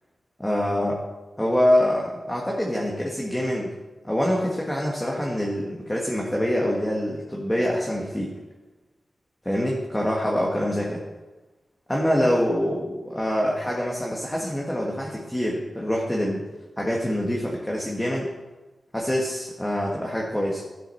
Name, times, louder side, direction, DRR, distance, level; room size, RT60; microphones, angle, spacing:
voice 1, 0.4-1.0 1.4-3.7 4.0-8.3 9.4-11.0 11.9-16.4 16.8-18.3 18.9-20.6, equal, 10° left, -3 dB, 1.7 m, -25 dB
12.5 x 7.6 x 5.6 m, 1.1 s
wide cardioid pair, 105°, 0 cm